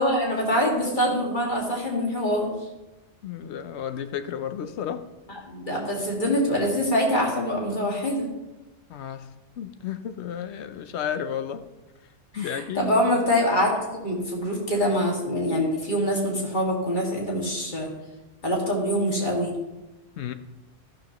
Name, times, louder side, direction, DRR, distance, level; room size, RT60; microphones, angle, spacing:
voice 1, 0.0-2.5 5.3-8.3 12.3-17.9 18.4-19.5, equal, 40° left, 2.2 m, -24 dB
voice 2, 3.2-5.0 8.9-9.3 9.6-11.6 12.3-12.9 20.2-20.3, left 9 dB, 70° left, 0.9 m, -32 dB
12.0 x 11.5 x 3.0 m
omnidirectional pair, 1.2 m